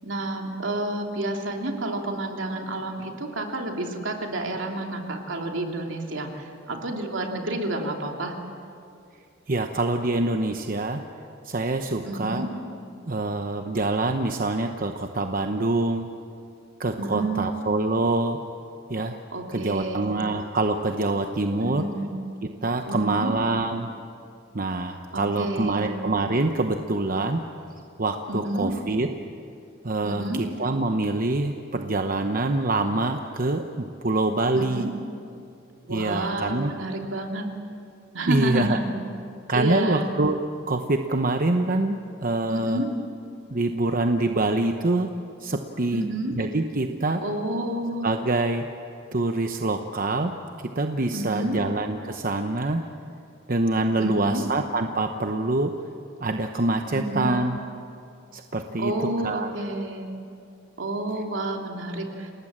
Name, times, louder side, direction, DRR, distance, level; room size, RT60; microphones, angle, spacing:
voice 1, 0.0-8.3 12.0-12.5 17.0-17.5 19.3-20.1 21.6-22.1 22.9-23.3 25.1-25.9 28.3-28.8 30.0-30.5 34.5-34.9 35.8-37.5 38.1-38.9 39.5-40.1 42.5-42.9 45.9-46.4 47.2-48.1 51.1-51.6 54.0-54.5 56.9-57.3 58.8-60.1 60.8-62.3, right 1 dB, 75° right, 2 dB, 2.9 m, -29 dB
voice 2, 9.5-11.0 11.4-12.4 13.1-16.1 16.8-18.4 18.9-19.2 19.5-21.9 22.4-23.9 24.5-27.4 28.0-29.1 29.8-34.9 35.9-36.7 38.3-38.8 39.5-40.4 40.7-42.8 43.5-45.1 45.4-47.2 48.0-48.7 49.1-50.3 50.7-52.9 53.5-55.7 56.2-57.6 58.3-59.5, right 2 dB, 45° right, 5 dB, 0.9 m, -25 dB
29.0 x 19.0 x 7.5 m, 2.5 s
head